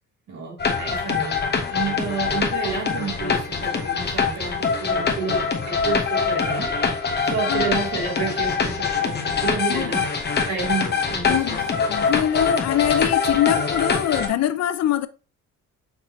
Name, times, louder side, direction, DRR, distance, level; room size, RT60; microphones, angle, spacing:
voice 1, 0.3-1.4 1.7-6.7 7.2-10.1 10.5-11.6, right 5 dB, 65° right, 2.5 m, -30 dB
sound 1, 0.6-14.3, left 5 dB, 35° left, 0.9 m, -24 dB
voice 2, 11.3-15.1, left 12 dB, 60° left, 0.5 m, -23 dB
5.9 x 2.9 x 2.9 m
cardioid pair, 90°, 30 cm